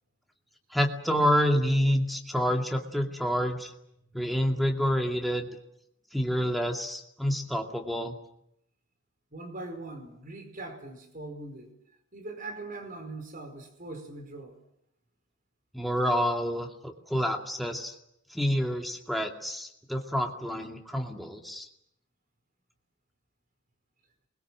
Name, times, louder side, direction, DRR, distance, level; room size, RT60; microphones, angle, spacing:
voice 1, 0.7-3.7 4.1-5.5 6.1-8.2 15.7-17.9 18.3-21.7, equal, ahead, 2 dB, 2.4 m, -28 dB
voice 2, 9.3-11.7 12.1-14.5, right 2 dB, 45° right, 6 dB, 4.7 m, -41 dB
28.0 x 21.5 x 7.6 m, 0.76 s
head